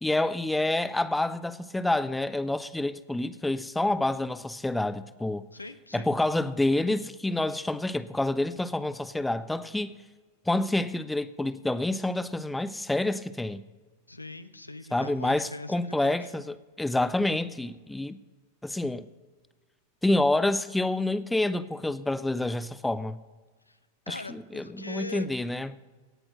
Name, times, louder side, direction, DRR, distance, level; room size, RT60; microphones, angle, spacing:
voice 1, 0.0-5.4 5.9-9.9 10.5-13.6 14.9-18.2 18.6-19.1 20.0-23.2 24.1-25.7, left 2 dB, 5° left, 0.4 m, -28 dB
voice 2, 5.5-6.1 14.1-16.3 23.7-23.8 24.1-25.3, left 2 dB, 85° left, 0.5 m, -41 dB
17.0 x 6.1 x 6.3 m
figure-of-eight pair, 90°, 0 cm